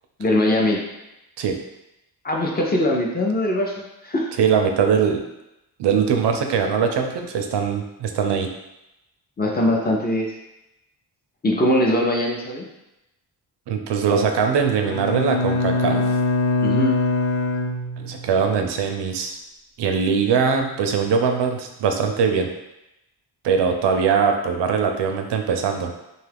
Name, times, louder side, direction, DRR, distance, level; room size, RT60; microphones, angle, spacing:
voice 1, 0.2-0.8 2.2-3.7 4.0-4.3 9.4-10.3 11.4-12.7 16.6-17.0, left 1 dB, 25° left, -1 dB, 0.5 m, -21 dB
voice 2, 4.4-5.2 5.8-8.5 13.7-16.1 18.0-19.4 19.8-22.5 23.4-25.9, right 6 dB, 80° right, 4 dB, 0.5 m, -21 dB
Bowed string instrument, 14.9-18.4, left 2 dB, 75° left, 1.1 m, -23 dB
2.8 x 2.3 x 3.3 m, 0.93 s
cardioid pair, 100°, 40 cm